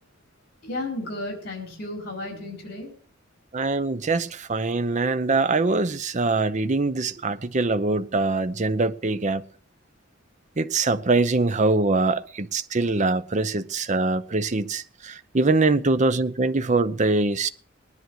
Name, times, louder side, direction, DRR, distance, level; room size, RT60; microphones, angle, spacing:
voice 1, 0.6-2.9, left 2 dB, 50° left, 4.4 m, -33 dB
voice 2, 3.5-9.4 10.6-17.5, right 3 dB, 35° right, 0.7 m, -23 dB
19.0 x 10.5 x 4.7 m
head